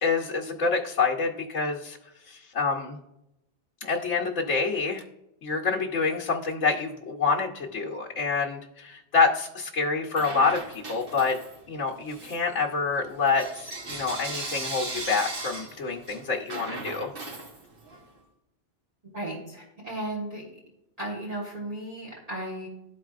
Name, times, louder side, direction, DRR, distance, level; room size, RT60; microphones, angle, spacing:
voice 1, 0.0-2.0 2.3-3.0 3.8-5.0 5.4-11.4 11.7-17.1, left 4 dB, 85° left, -3 dB, 1.2 m, -27 dB
Bell / Coin (dropping), 10.1-11.7 12.1-18.0, right 2 dB, 50° right, 1.3 m, -38 dB
voice 2, 19.1-20.5 21.0-22.7, right 1 dB, 35° right, -6 dB, 1.5 m, -35 dB
12.5 x 4.6 x 2.4 m, 0.86 s
omnidirectional pair, 1.2 m